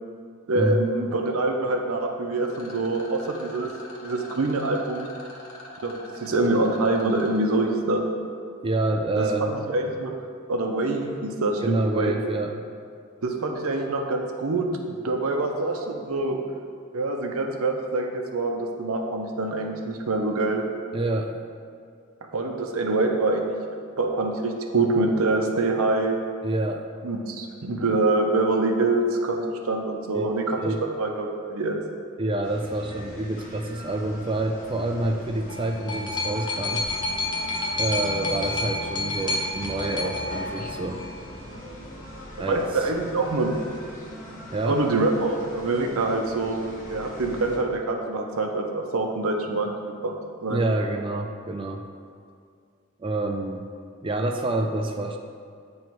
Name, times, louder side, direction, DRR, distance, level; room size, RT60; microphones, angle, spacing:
voice 1, 0.5-3.7 4.0-5.1 5.8-5.9 6.2-8.0 9.2-10.1 10.5-12.2 13.2-16.4 16.9-20.6 22.3-23.5 24.0-26.2 27.0-30.6 31.0-31.8 42.5-43.5 44.6-46.6 46.9-49.7 50.0-50.1 50.4-50.6, right 2 dB, 85° right, 2 dB, 0.7 m, -25 dB
Rattle, 2.4-7.4, left 1 dB, 85° left, 1.2 m, -43 dB
voice 2, 8.6-9.6 11.6-12.6 20.9-21.4 26.4-26.9 30.1-30.3 30.6-30.8 32.2-36.8 37.8-41.0 42.4-42.9 44.5-44.8 50.5-51.9 53.0-53.7 54.0-55.2, right 2 dB, 25° right, 4 dB, 0.3 m, -27 dB
sound 1, 32.4-47.6, equal, 40° left, 1.2 m, -40 dB
sound 2, 35.3-41.2 42.1-42.2, left 2 dB, 20° left, 0.6 m, -30 dB
9.2 x 3.1 x 4.5 m, 2.2 s
head